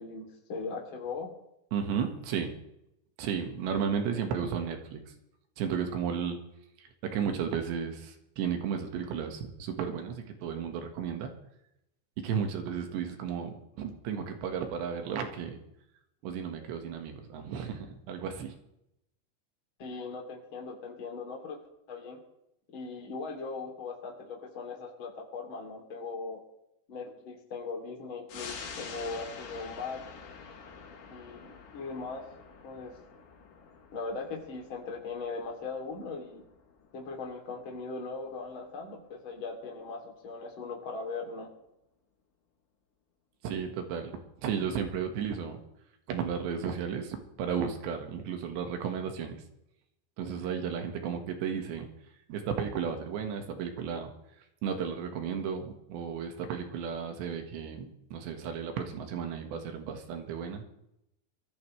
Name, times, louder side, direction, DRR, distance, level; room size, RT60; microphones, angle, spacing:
voice 1, 0.0-1.3 19.8-21.6 21.9-22.2 22.7-26.4 26.9-30.0 31.1-32.3 32.6-32.9 33.9-36.4 36.9-41.5, left 4 dB, 30° left, 1 dB, 3.1 m, -39 dB
voice 2, 1.7-2.6 3.2-5.1 5.6-6.4 7.0-11.3 12.2-15.6 16.2-18.5 43.4-44.1 44.4-45.6 46.1-49.4 50.2-51.9 52.3-54.1 54.6-60.6, right 7 dB, 75° right, 5 dB, 3.8 m, -34 dB
sound 1, 28.3-39.3 39.7-39.8, left 5 dB, 80° left, 5.3 m, -48 dB
23.0 x 14.5 x 3.3 m, 0.82 s
omnidirectional pair, 5.1 m